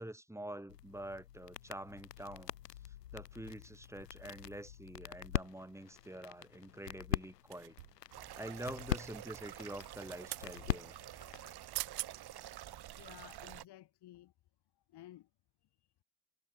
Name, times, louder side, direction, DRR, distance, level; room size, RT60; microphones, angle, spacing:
voice 1, 0.0-2.5 3.1-7.7 8.4-10.9, right 1 dB, 5° right, 6.2 m, -46 dB
sound 1, 0.7-11.6, left 12 dB, 85° left, 1.2 m, -43 dB
sound 2, 7.5-8.1 9.8-10.5 11.5-11.6 11.7-12.1 12.7-12.8, right 19 dB, 75° right, 3.0 m, -42 dB
sound 3, 8.1-13.6, right 13 dB, 50° right, 3.6 m, -49 dB
voice 2, 13.0-14.3 14.9-15.3 15.6-16.0, left 14 dB, 55° left, 3.6 m, -55 dB
hypercardioid pair, 55°, 47 cm